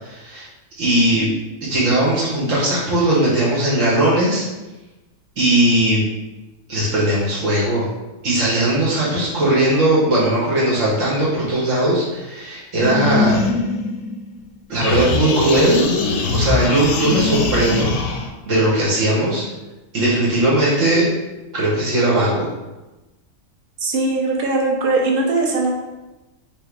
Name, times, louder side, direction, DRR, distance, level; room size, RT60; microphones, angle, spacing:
voice 1, 0.0-0.5 0.8-1.3 1.6-4.4 5.4-6.0 6.7-7.9 8.2-13.4 14.7-15.8 16.3-17.9 18.4-19.4 19.9-21.1 21.5-22.5, right 1 dB, 75° right, -7 dB, 1.4 m, -18 dB
sound 1, 12.8-14.5 14.8-18.3, left 3 dB, 75° left, 0.9 m, -22 dB
voice 2, 23.8-25.7, right 3 dB, 50° right, -1 dB, 0.9 m, -20 dB
5.0 x 2.0 x 4.5 m, 1.1 s
omnidirectional pair, 1.4 m